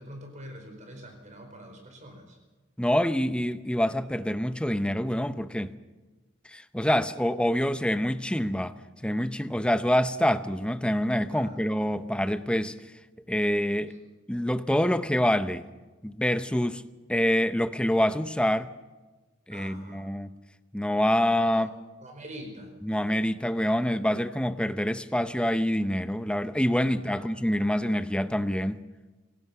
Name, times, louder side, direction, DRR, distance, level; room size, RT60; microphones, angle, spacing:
voice 1, 0.0-2.4 11.3-11.6 19.5-20.0 21.4-21.7 22.0-22.7 26.9-27.3, equal, 40° right, 4.9 m, -45 dB
voice 2, 2.8-5.7 6.5-8.7 9.0-12.8 13.3-14.0 14.3-15.7 16.0-16.8 17.1-18.7 19.5-20.4 20.7-21.7 22.8-28.8, equal, 5° left, 0.7 m, -26 dB
27.5 x 16.5 x 5.8 m
head